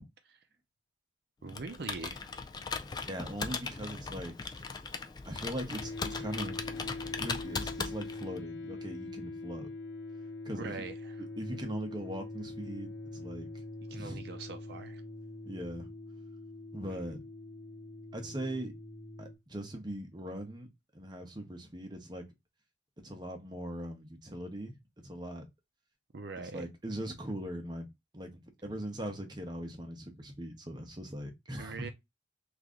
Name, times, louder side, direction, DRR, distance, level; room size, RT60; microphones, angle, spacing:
voice 1, 1.4-2.2 10.5-11.1 13.9-15.0 26.1-26.7 31.6-31.9, right 4 dB, 55° right, 0.5 m, -42 dB
Computer keyboard, 1.5-8.4, left 4 dB, 20° left, 0.3 m, -39 dB
voice 2, 3.1-4.6 5.3-6.5 7.2-9.7 10.4-10.8 11.4-13.6 13.9-14.2 15.4-15.9 16.7-17.2 18.1-18.7 19.2-20.7 20.9-22.2 23.0-24.8 25.0-25.4 26.5-27.9 28.1-28.3 28.6-31.9, right 1 dB, 20° right, 0.8 m, -40 dB
sound 1, 5.8-19.3, left 2 dB, 65° left, 0.8 m, -43 dB
3.1 x 2.5 x 3.6 m
head